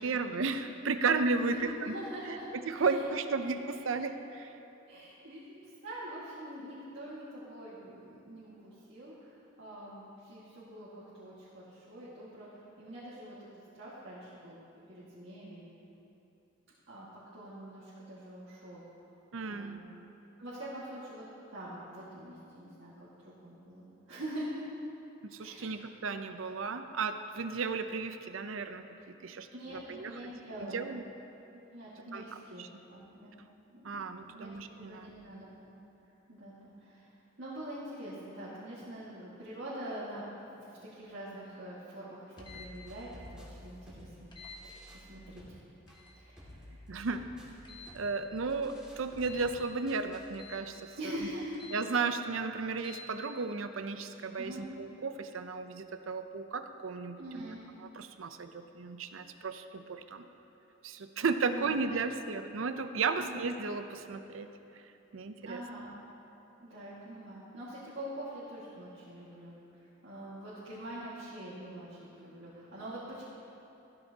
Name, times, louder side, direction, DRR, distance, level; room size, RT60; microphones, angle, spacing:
voice 1, 0.0-1.9 2.5-4.5 19.3-19.8 25.3-29.5 29.9-30.1 30.6-31.0 32.1-32.7 33.8-35.1 46.9-47.2 47.9-50.9 51.7-57.5 58.0-60.2 60.8-64.5 65.1-65.6, right 4 dB, 85° right, 9 dB, 0.6 m, -34 dB
voice 2, 1.4-2.5 2.8-3.0 4.9-12.5 12.8-13.5 13.7-14.6 14.9-15.6 16.9-18.8 19.4-19.8 20.4-21.2 21.5-24.6 25.4-25.7 29.5-30.9 31.5-33.3 33.7-34.0 34.3-34.5 34.8-35.8 36.3-37.1 37.4-44.3 44.6-45.4 46.1-46.9 51.0-51.7 54.3-54.7 57.2-57.6 60.2-60.4 61.4-61.9 63.2-63.6 65.4-65.9 66.6-73.2, right 1 dB, 70° right, -10 dB, 1.9 m, -44 dB
sound 1, 42.4-42.7 44.3-44.6 45.9-46.2 47.6-48.0 49.2-49.5 50.3-50.6 51.5-51.8 52.8-53.1, left 4 dB, 25° left, 1.4 m, -49 dB
sound 2, 42.4-50.4, equal, 5° right, 2.1 m, -53 dB
14.0 x 12.5 x 2.8 m, 2.9 s
head